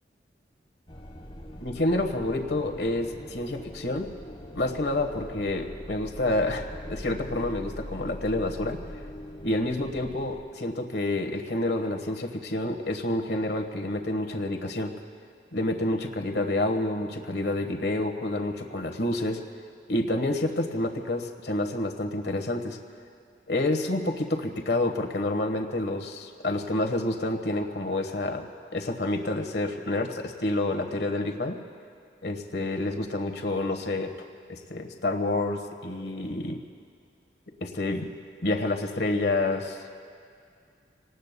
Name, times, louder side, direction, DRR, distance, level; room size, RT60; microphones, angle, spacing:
sound 1, 0.9-10.4, equal, 30° left, 1.1 m, -42 dB
voice 1, 1.6-4.1 4.5-8.8 9.4-14.9 15.5-19.4 19.9-22.8 23.5-31.6 32.2-34.1 34.5-36.6 37.6-38.1 38.4-40.0, left 2 dB, 70° left, 4 dB, 1.3 m, -28 dB
27.0 x 19.0 x 2.2 m, 2.3 s
head